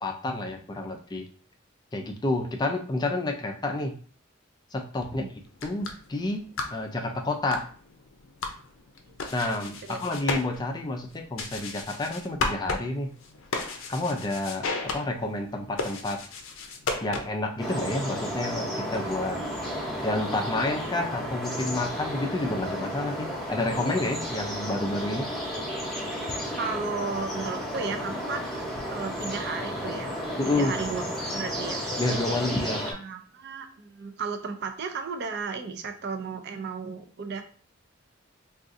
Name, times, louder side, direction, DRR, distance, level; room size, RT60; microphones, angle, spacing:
voice 1, 0.0-1.3 1.9-3.9 4.7-5.3 5.6-6.4 6.7-7.7 9.3-13.1 13.9-16.2 17.0-19.4 20.0-25.3 30.4-30.7 32.0-32.8, left 2 dB, 20° left, 4 dB, 0.4 m, -29 dB
sound 1, 5.4-17.5, left 3 dB, 85° left, 0.5 m, -36 dB
sound 2, 17.6-32.9, equal, ahead, 0.8 m, -33 dB
voice 2, 26.6-30.2 30.4-31.0 31.3-31.8 32.9-37.4, right 5 dB, 55° right, 7 dB, 0.4 m, -34 dB
3.8 x 2.4 x 2.6 m, 0.42 s
head